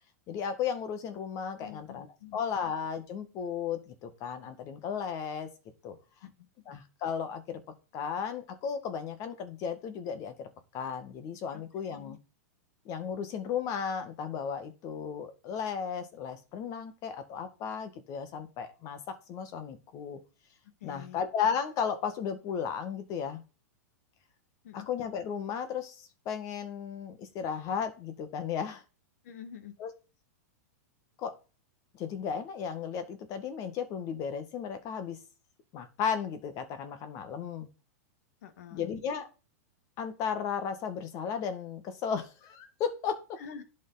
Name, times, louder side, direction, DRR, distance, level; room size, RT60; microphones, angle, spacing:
voice 1, 0.3-2.1 2.3-5.5 5.8-6.0 6.7-7.6 7.9-12.2 12.9-20.2 20.8-23.4 24.7-28.8 29.8-29.9 31.2-31.4 31.9-35.2 35.7-37.7 38.7-39.3 40.0-43.4, left 7 dB, 40° left, 10 dB, 1.9 m, -35 dB
voice 2, 1.6-2.4 6.2-6.5 11.5-11.6 11.9-12.2 20.8-21.2 24.6-24.9 29.2-29.7 38.4-38.9 43.4-43.6, left 8 dB, 70° left, 10 dB, 1.7 m, -47 dB
11.0 x 5.4 x 4.1 m, 0.33 s
hypercardioid pair, 120°, 8 cm